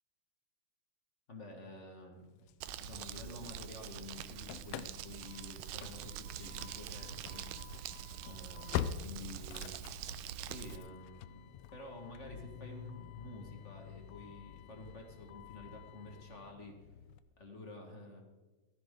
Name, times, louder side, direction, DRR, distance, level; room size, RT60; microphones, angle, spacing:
voice 1, 1.3-2.4 2.8-7.5 7.8-8.0 8.2-10.0 10.4-11.4 11.7-16.8 17.4-18.2, left 1 dB, 30° left, 2 dB, 1.4 m, -50 dB
Engine starting / Slam, 2.5-3.9 4.1-17.2, left 10 dB, 80° left, 1.5 m, -46 dB
Crumpling crinkling, 2.6-10.8, right 9 dB, 80° right, 2.0 m, -45 dB
17.5 x 14.0 x 3.8 m, 1.2 s
omnidirectional pair, 3.5 m